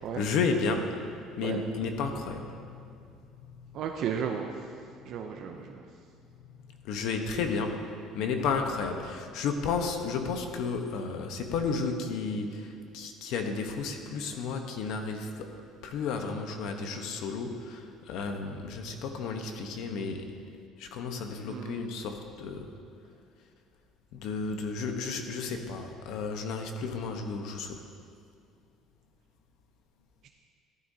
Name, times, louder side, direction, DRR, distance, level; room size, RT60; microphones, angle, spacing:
voice 1, 0.1-1.0 1.4-2.8 6.8-7.8 8.1-15.5 15.8-20.4 20.8-22.7 24.1-27.9, left 4 dB, 65° left, 5 dB, 1.0 m, -32 dB
voice 2, 3.7-4.5 5.1-5.8 21.4-21.8 30.2-30.3, right 8 dB, 50° right, 3 dB, 0.6 m, -34 dB
13.5 x 12.0 x 2.8 m, 2.3 s
cardioid pair, 165°, 0 cm